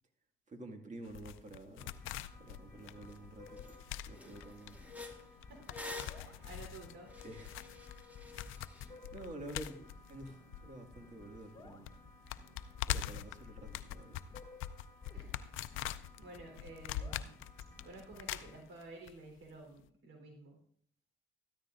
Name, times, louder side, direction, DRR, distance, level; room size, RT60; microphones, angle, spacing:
voice 1, 0.5-1.9 2.4-4.8 7.2-7.6 9.1-9.8 10.1-11.9 12.9-14.2, right 1 dB, 35° right, 4 dB, 2.0 m, -49 dB
sound 1, 1.1-11.2 11.4-11.5 11.8-19.1 19.4-19.5, left 12 dB, 90° left, 0.4 m, -43 dB
sound 2, 1.8-18.6, left 2 dB, 20° left, 2.9 m, -57 dB
sound 3, 3.1-3.2 3.6-3.8 4.1-8.9, left 2 dB, 10° right, 2.0 m, -49 dB
voice 2, 5.5-5.8 6.1-7.1 13.2-13.3 15.1-15.4 15.9-17.4 17.8-20.6, right 2 dB, 90° right, 2 dB, 3.7 m, -52 dB
13.5 x 13.5 x 2.5 m, 0.63 s
cardioid pair, 90°, 20 cm